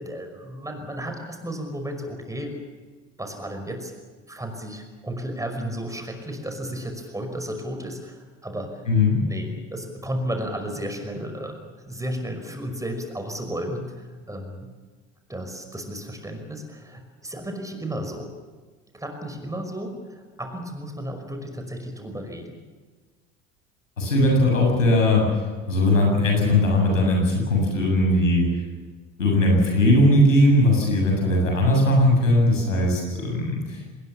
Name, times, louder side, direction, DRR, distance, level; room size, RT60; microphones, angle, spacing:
voice 1, 0.0-2.6 3.2-3.9 4.3-8.8 9.2-11.6 11.9-14.7 15.3-18.3 18.9-22.6, equal, 10° right, 5 dB, 5.5 m, -33 dB
voice 2, 8.9-9.2 24.0-25.2 25.7-28.5 29.2-33.9, left 1 dB, 85° left, 0 dB, 7.9 m, -19 dB
25.0 x 21.0 x 7.3 m, 1.4 s
figure-of-eight pair, 70°, 38 cm